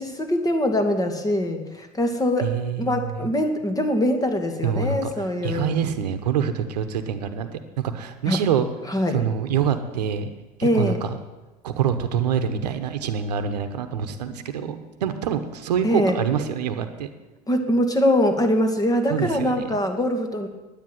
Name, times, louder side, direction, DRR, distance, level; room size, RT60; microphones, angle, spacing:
voice 1, 0.0-2.5 2.8-5.7 8.3-8.4 8.9-9.2 10.6-11.0 15.8-16.2 17.5-20.5, left 1 dB, 20° left, 6 dB, 2.3 m, -23 dB
voice 2, 2.4-3.1 4.6-5.1 5.4-8.7 9.1-10.3 10.6-11.2 11.6-17.1 19.1-19.8, right 8 dB, 90° right, 9 dB, 1.1 m, -26 dB
10.0 x 9.2 x 9.2 m, 1.1 s
hypercardioid pair, 85°, 20 cm